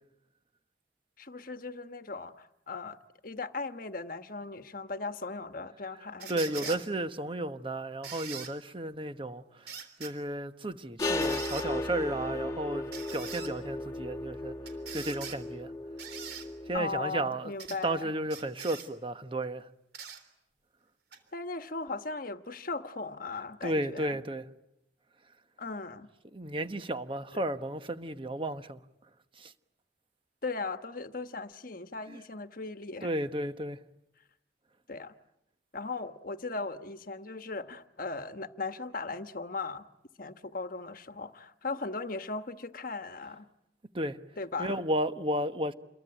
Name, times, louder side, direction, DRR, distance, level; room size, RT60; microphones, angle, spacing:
voice 1, 1.2-3.0 3.2-6.8 16.7-18.1 21.3-24.2 25.6-26.1 27.3-27.4 30.4-33.1 34.9-35.1 35.7-39.9 40.2-43.5 44.4-44.8, left 3 dB, 50° left, 1.3 m, -38 dB
sound 1, 6.2-6.8 8.0-8.5 9.7-10.1 11.2-11.7 12.9-13.5 14.7-15.4 16.0-16.5 17.6-17.8 18.3-18.9 19.9-20.2 21.1-21.2, right 7 dB, 60° right, 3.5 m, -42 dB
voice 2, 6.3-14.5 14.9-15.7 16.7-17.5 17.8-19.7 23.6-24.4 26.3-28.8 29.4-29.5 32.1-32.2 33.0-33.8 43.9-44.2 44.6-45.7, right 1 dB, 30° right, 1.2 m, -33 dB
sound 2, 11.0-16.8, left 2 dB, 20° left, 1.5 m, -35 dB
29.0 x 22.5 x 9.0 m
head